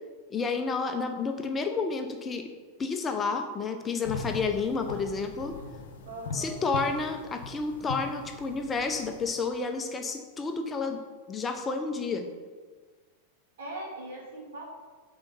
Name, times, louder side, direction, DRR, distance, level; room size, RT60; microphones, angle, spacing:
voice 1, 0.3-2.5 2.8-5.6 6.3-11.0 11.3-12.3, left 4 dB, 20° left, 6 dB, 0.6 m, -30 dB
sound 1, 4.0-9.3, left 3 dB, 55° left, 1.0 m, -40 dB
voice 2, 6.1-6.6 13.6-14.6, right 1 dB, 55° right, -2 dB, 2.4 m, -40 dB
8.9 x 4.0 x 5.3 m, 1.5 s
figure-of-eight pair, 90°, 0 cm